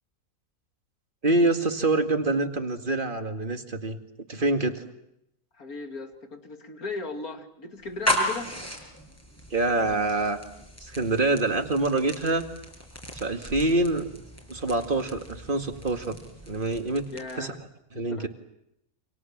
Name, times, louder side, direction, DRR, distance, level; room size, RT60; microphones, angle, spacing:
voice 1, 1.2-4.0 4.3-4.8 9.5-10.4 10.8-12.5 13.1-14.1 14.5-16.2 16.5-17.1 17.4-17.5 17.9-18.3, right 2 dB, 35° right, 6 dB, 2.3 m, -25 dB
voice 2, 5.6-8.5 17.1-17.6 17.9-18.3, left 3 dB, 70° left, 5 dB, 3.2 m, -37 dB
sound 1, 7.8-17.5, left 1 dB, 10° left, 6.4 m, -35 dB
29.5 x 27.0 x 7.4 m, 0.81 s
omnidirectional pair, 1.6 m